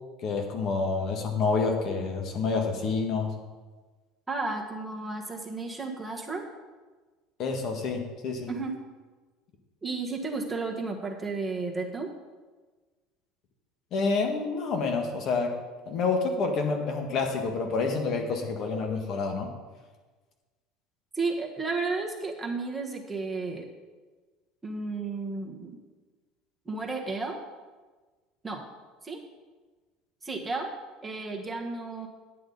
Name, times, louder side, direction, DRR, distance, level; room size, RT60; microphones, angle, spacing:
voice 1, 0.2-3.3 7.4-8.5 13.9-15.5 15.9-19.5, left 4 dB, 50° left, 3 dB, 1.7 m, -28 dB
voice 2, 4.3-6.5 8.5-8.8 9.8-12.1 21.1-23.7 24.6-25.8 26.6-27.4 28.4-28.7 29.0-29.2 30.2-30.7 31.0-32.1, right 3 dB, 15° right, 1 dB, 1.6 m, -33 dB
9.3 x 8.5 x 4.1 m, 1.3 s
supercardioid pair, 110°, 0 cm